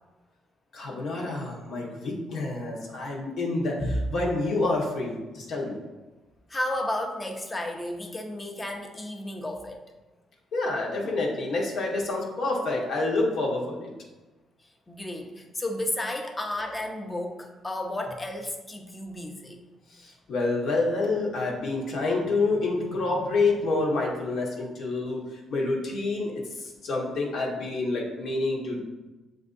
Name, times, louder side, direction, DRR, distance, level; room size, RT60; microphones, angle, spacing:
voice 1, 0.7-3.8 4.1-5.8 10.5-13.9 20.0-25.2 25.5-26.3 26.6-28.8, left 3 dB, 70° left, -2 dB, 1.1 m, -28 dB
voice 2, 6.5-9.8 14.9-19.6, left 1 dB, 20° left, 2 dB, 0.7 m, -32 dB
7.5 x 2.6 x 2.5 m, 1.1 s
cardioid pair, 90°, 0 cm